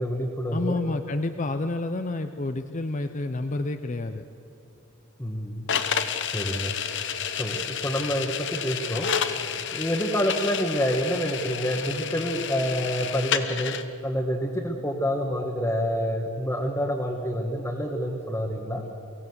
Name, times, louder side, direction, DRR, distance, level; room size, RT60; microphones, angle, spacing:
voice 1, 0.0-0.8 5.2-6.0 6.3-6.8 7.4-9.1 9.4-13.8 14.0-18.8, equal, 10° left, -1 dB, 1.4 m, -28 dB
voice 2, 0.5-4.3 18.7-18.9, left 2 dB, 35° left, 8 dB, 0.6 m, -29 dB
sound 1, 5.7-13.8, left 8 dB, 55° left, 1.0 m, -30 dB
23.5 x 16.0 x 7.9 m, 2.5 s
head